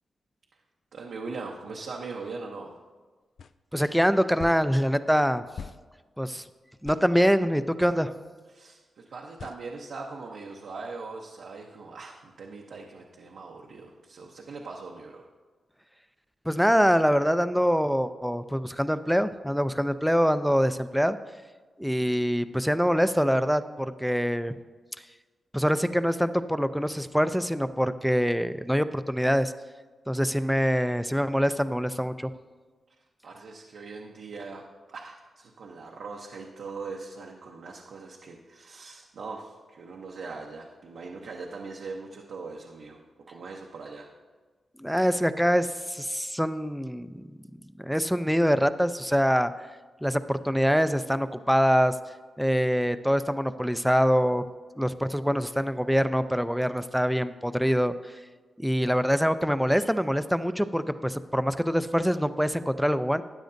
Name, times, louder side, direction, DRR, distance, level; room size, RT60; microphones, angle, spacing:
voice 1, 0.9-2.7 8.5-15.2 33.2-43.0 43.3-44.1, right 4 dB, 80° right, -1 dB, 0.8 m, -41 dB
sound 1, 3.4-3.5 4.4-4.7 5.6-5.8 6.8-7.1 7.8-8.0 9.4-9.6, left 6 dB, 70° left, 0.3 m, -41 dB
voice 2, 3.7-5.4 6.2-6.4 6.8-8.1 16.5-21.2 21.8-24.5 25.5-29.5 30.1-32.3 44.8-47.2 47.8-49.7 50.0-52.0 52.4-54.4 54.8-58.2 58.6-63.2, equal, ahead, 11 dB, 0.5 m, -24 dB
13.0 x 9.0 x 2.6 m, 1.4 s
cardioid pair, 55°, 0 cm